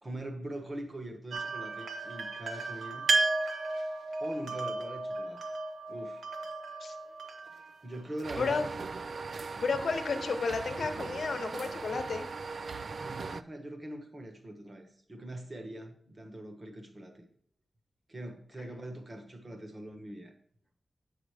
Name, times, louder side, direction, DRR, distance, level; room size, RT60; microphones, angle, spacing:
voice 1, 0.0-3.1 4.2-5.4 5.9-6.2 7.8-8.6 13.0-17.2 18.1-20.3, right 1 dB, 30° right, 5 dB, 1.3 m, -42 dB
sound 1, 1.3-8.2, right 3 dB, 80° right, 1.0 m, -34 dB
sound 2, 8.2-13.4, right 4 dB, 60° right, 0.3 m, -39 dB
voice 2, 9.5-12.3 18.6-18.7, left 4 dB, 65° left, 7 dB, 0.9 m, -32 dB
8.6 x 4.9 x 4.8 m, 0.63 s
wide cardioid pair, 160°, 0 cm